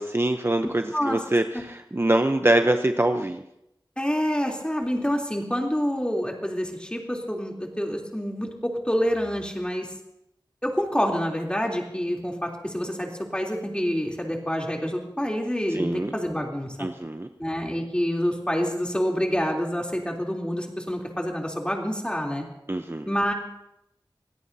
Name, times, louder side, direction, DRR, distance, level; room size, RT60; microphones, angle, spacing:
voice 1, 0.0-3.4 15.7-16.1 16.8-17.3 22.7-23.1, right 1 dB, 30° right, 6 dB, 0.7 m, -24 dB
voice 2, 4.0-9.9 10.6-16.9 17.4-22.4 23.0-23.3, equal, 10° left, 0 dB, 3.3 m, -27 dB
26.5 x 17.0 x 2.8 m, 0.82 s
wide cardioid pair, 55°, 8 cm